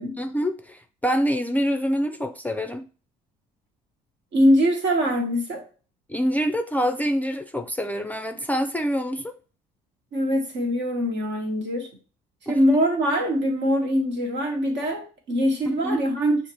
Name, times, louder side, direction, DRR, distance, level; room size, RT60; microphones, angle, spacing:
voice 1, 0.2-2.9 6.1-9.3 12.5-12.6 15.8-16.0, equal, 10° left, 6 dB, 0.4 m, -26 dB
voice 2, 4.3-5.6 10.1-11.9 12.5-16.4, equal, 65° right, 2 dB, 1.4 m, -23 dB
6.4 x 2.5 x 3.0 m, 0.37 s
hypercardioid pair, 60°, 20 cm